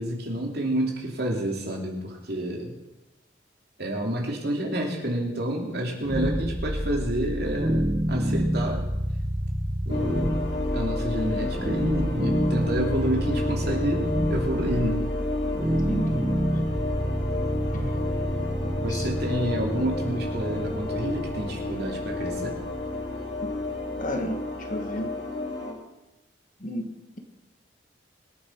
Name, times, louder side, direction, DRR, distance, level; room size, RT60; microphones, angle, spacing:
voice 1, 0.0-2.7 3.8-8.9 9.9-10.4 10.7-15.1 18.8-22.6, right 1 dB, 55° right, 1 dB, 2.8 m, -29 dB
sound 1, 6.1-25.1, equal, 25° right, 1.3 m, -29 dB
sound 2, 9.9-25.7, left 2 dB, 65° left, 3.1 m, -32 dB
voice 2, 15.9-16.2 17.7-18.1 18.6-19.1 24.0-25.1 26.6-27.2, equal, 40° left, 5 dB, 1.6 m, -33 dB
25.0 x 8.6 x 4.6 m, 1.0 s
head